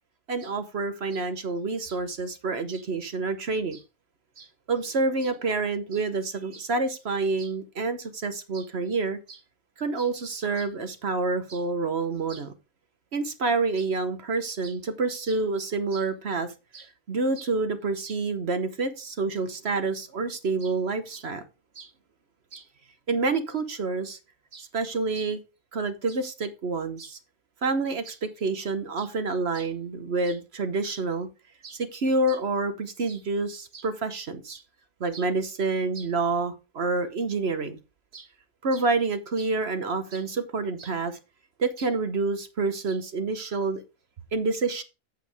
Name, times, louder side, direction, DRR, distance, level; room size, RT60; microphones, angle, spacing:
voice 1, 0.3-3.8 4.4-9.4 9.8-12.5 13.1-16.5 16.7-21.4 21.8-21.9 22.5-22.6 23.1-24.2 24.5-25.4 25.7-27.2 27.6-31.3 31.6-34.6 35.0-37.8 38.1-38.3 38.6-41.2 41.6-43.8 44.3-44.8, right 3 dB, 50° right, 1.2 m, -28 dB
8.3 x 8.1 x 3.4 m
omnidirectional pair, 1.5 m